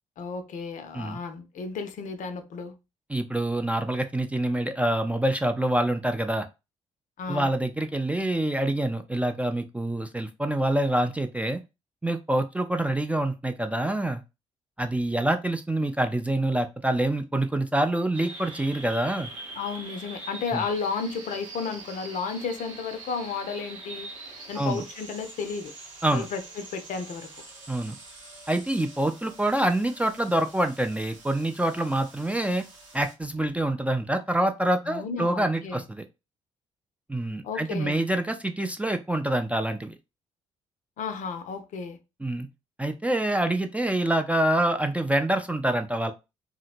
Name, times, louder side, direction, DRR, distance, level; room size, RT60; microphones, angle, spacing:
voice 1, 0.2-2.7 7.2-7.5 19.6-24.1 24.5-25.7 26.1-27.3 34.8-35.8 37.4-38.0 41.0-42.0, left 5 dB, 55° left, 0.6 m, -33 dB
voice 2, 3.1-6.5 7.3-11.6 12.0-14.2 14.8-19.3 20.5-20.6 24.6-24.8 26.0-26.3 27.7-28.0 28.5-32.6 32.9-36.0 37.1-39.9 42.2-42.5 42.8-46.1, right 1 dB, 10° right, 0.4 m, -26 dB
sound 1, 18.1-33.1, right 3 dB, 85° right, 0.6 m, -44 dB
2.8 x 2.8 x 2.5 m
figure-of-eight pair, 45°, 16 cm